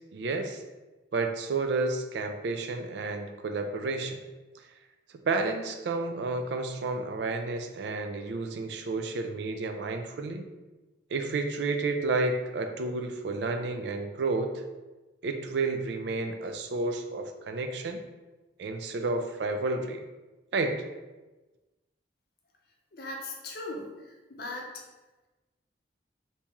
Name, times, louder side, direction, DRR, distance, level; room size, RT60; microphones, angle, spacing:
voice 1, 0.1-0.6 1.1-4.2 5.2-10.4 11.1-14.6 15.2-18.0 18.6-20.0 20.5-20.8, right 3 dB, 70° right, 6 dB, 0.4 m, -31 dB
voice 2, 22.9-24.7, left 2 dB, 55° left, 0 dB, 0.6 m, -39 dB
2.9 x 2.8 x 3.5 m, 1.2 s
head